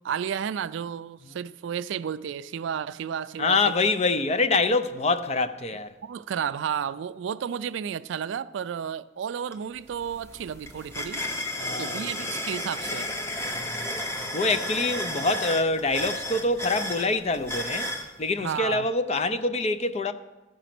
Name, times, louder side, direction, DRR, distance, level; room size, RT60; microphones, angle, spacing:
voice 1, 0.0-3.6 6.0-11.2 11.8-13.1 18.4-18.9, right 8 dB, 65° right, 0.3 m, -32 dB
voice 2, 3.4-5.9 11.6-12.0 13.5-14.0 14.3-17.9 18.2-20.1, left 3 dB, 30° left, 0.5 m, -25 dB
sound 1, 9.5-9.6 9.9-18.1, left 1 dB, 15° left, 0.8 m, -33 dB
14.0 x 5.1 x 5.9 m
head